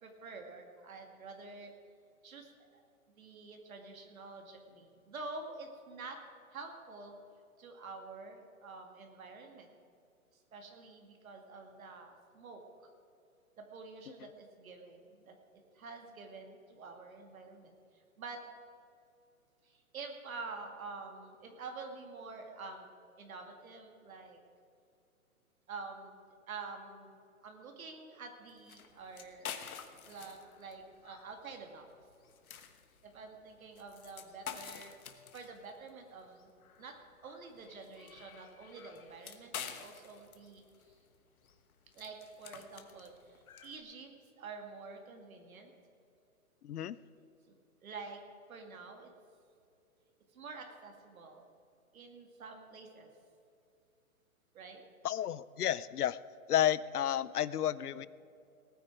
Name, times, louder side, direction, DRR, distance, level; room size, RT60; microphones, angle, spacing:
voice 1, 0.0-1.7 2.2-2.8 3.2-6.2 6.5-7.2 7.6-9.7 10.5-12.6 13.6-15.3 15.7-18.4 19.6-22.9 23.2-24.4 25.7-26.2 26.5-27.1 27.4-29.4 30.0-31.9 33.0-35.0 35.3-36.5 36.8-37.0 37.2-40.6 41.9-44.1 44.4-45.7 47.5-47.6 47.8-48.2 48.5-49.1 50.3-51.4 51.9-53.1 54.5-54.8, right 4 dB, 65° right, 4 dB, 2.1 m, -48 dB
sound 1, 28.5-43.8, left 7 dB, 70° left, 1.5 m, -49 dB
voice 2, 46.6-47.0 55.0-56.2 56.5-58.1, left 11 dB, 90° left, 19 dB, 0.7 m, -31 dB
18.5 x 9.3 x 5.0 m, 2.6 s
hypercardioid pair, 155°, 44 cm